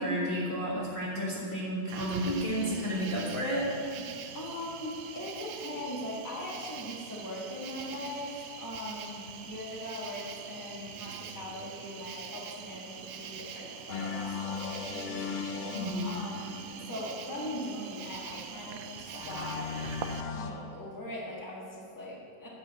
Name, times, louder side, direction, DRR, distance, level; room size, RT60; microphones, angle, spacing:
voice 1, 0.0-3.7 15.7-16.1, equal, 35° left, -6 dB, 1.6 m, -31 dB
Cricket, 1.9-20.2, right 7 dB, 70° right, 1.0 m, -44 dB
voice 2, 4.3-15.2 16.0-16.5 16.9-19.7 20.3-22.5, left 1 dB, 10° left, -5 dB, 1.6 m, -40 dB
sound 1, 13.9-17.1 19.1-20.5, left 6 dB, 75° left, 0.4 m, -37 dB
9.9 x 4.7 x 7.9 m, 2.5 s
omnidirectional pair, 1.7 m